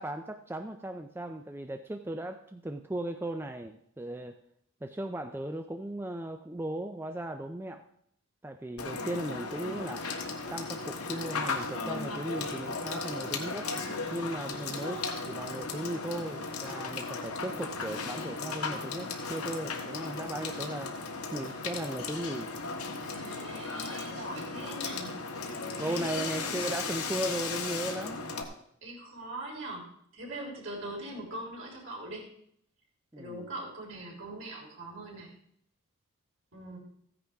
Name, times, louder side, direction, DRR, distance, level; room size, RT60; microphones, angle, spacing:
voice 1, 0.0-4.4 4.8-7.8 8.4-10.1 10.5-13.7 14.1-21.0 21.3-22.5 25.8-28.5 33.1-33.5, right 1 dB, 10° right, 6 dB, 0.4 m, -37 dB
Water / Water tap faucet / Sink (filling or washing), 8.8-28.4, left 4 dB, 90° left, 1.5 m, -36 dB
voice 2, 23.0-25.1 25.4-26.6 28.8-32.3 33.2-35.3 36.5-36.8, right 1 dB, 65° right, -2 dB, 3.6 m, -42 dB
15.5 x 9.8 x 3.5 m, 0.71 s
head